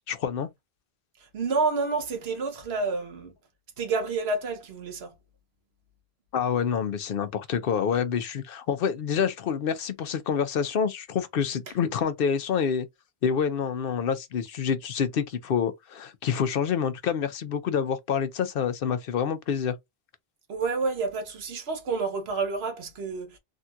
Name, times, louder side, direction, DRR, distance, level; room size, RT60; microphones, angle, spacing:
voice 1, 0.1-0.5 6.3-12.9 13.2-19.8, left 7 dB, 65° left, 0.8 m, -27 dB
voice 2, 1.2-3.3 3.8-5.1 20.5-23.4, right 4 dB, 85° right, 1.1 m, -29 dB
3.6 x 2.3 x 2.6 m
omnidirectional pair, 1.0 m